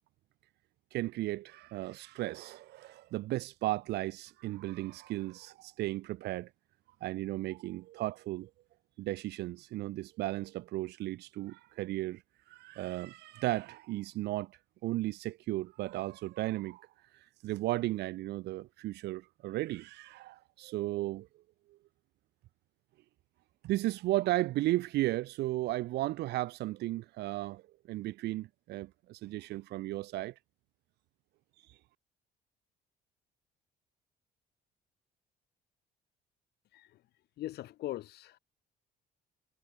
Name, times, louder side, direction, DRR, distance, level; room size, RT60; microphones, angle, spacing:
voice 1, 0.9-6.5 7.0-8.5 9.0-12.2 12.5-14.5 14.8-16.9 17.1-21.3 23.6-27.6 27.9-30.3 31.7-31.8, right 17 dB, 80° right, 1.7 m, -35 dB
voice 2, 37.4-38.4, left 15 dB, 75° left, 4.9 m, -40 dB
cardioid pair, 110°, 17 cm